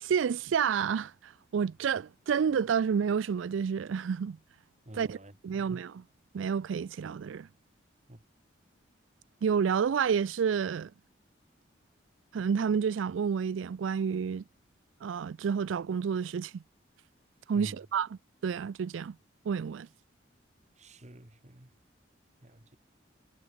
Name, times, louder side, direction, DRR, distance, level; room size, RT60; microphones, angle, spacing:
voice 1, 0.0-4.4 4.9-5.2 5.4-6.0 6.3-7.5 9.4-10.9 12.3-14.4 15.0-16.6 17.5-19.2 19.5-19.9, right 7 dB, 85° right, 0.4 m, -29 dB
voice 2, 4.8-5.7 8.1-8.2 17.5-17.8 20.8-21.7 22.4-22.8, right 1 dB, 35° right, 1.6 m, -48 dB
head